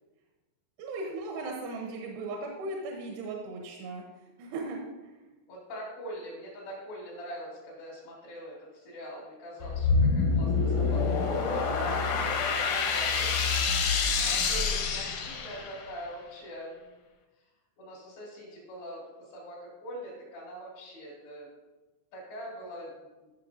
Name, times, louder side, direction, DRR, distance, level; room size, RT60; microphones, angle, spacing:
voice 1, 0.8-4.0 4.4-5.3, right 2 dB, 85° right, 0 dB, 2.9 m, -37 dB
voice 2, 5.5-16.9 17.8-21.5 22.1-23.3, equal, 85° left, -9 dB, 4.8 m, -43 dB
sound 1, 9.6-15.9, left 4 dB, 70° left, 1.9 m, -27 dB
14.0 x 6.6 x 2.6 m, 1.2 s
omnidirectional pair, 4.8 m